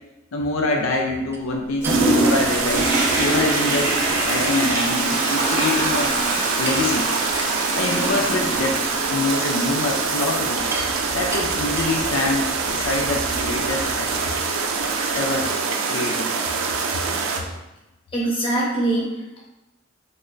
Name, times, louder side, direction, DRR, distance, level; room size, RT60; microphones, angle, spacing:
voice 1, 0.3-2.9 3.2-3.9 4.2-6.1 6.6-7.1 7.7-10.6 11.1-14.1 15.1-15.5 15.9-16.3, left 2 dB, 80° left, 1 dB, 0.4 m, -25 dB
sound 1, 1.3-16.8, right 1 dB, 15° right, 0.3 m, -40 dB
Toilet flush, 1.8-14.3 14.8-14.9, right 1 dB, 40° right, 0.7 m, -26 dB
sound 2, 1.8-17.4, right 4 dB, 85° right, 0.4 m, -25 dB
voice 2, 18.1-19.4, right 2 dB, 25° left, -4 dB, 0.8 m, -23 dB
3.2 x 2.1 x 3.7 m, 0.99 s
head